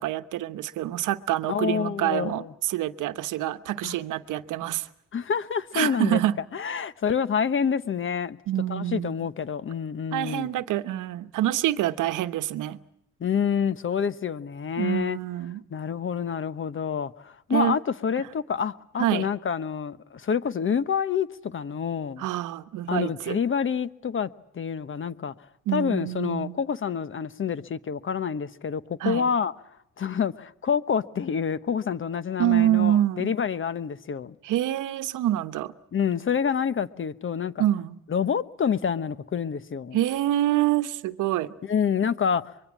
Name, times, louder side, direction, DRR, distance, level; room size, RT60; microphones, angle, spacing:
voice 1, 0.0-4.9 5.7-6.4 8.5-9.1 10.1-12.8 14.8-15.6 17.5-17.8 19.0-19.3 22.2-23.4 25.7-26.6 29.0-29.3 32.4-33.3 34.4-35.7 37.6-37.9 39.9-41.5, right 13 dB, 85° right, 1.0 m, -26 dB
voice 2, 1.5-2.5 3.8-4.0 5.1-6.2 6.5-8.4 8.7-10.5 13.2-15.2 15.7-22.2 22.9-25.3 25.7-29.5 30.0-34.3 35.9-37.6 38.1-40.0 41.6-42.5, left 7 dB, 40° left, 1.1 m, -27 dB
24.5 x 22.5 x 7.3 m
cardioid pair, 90°, 30 cm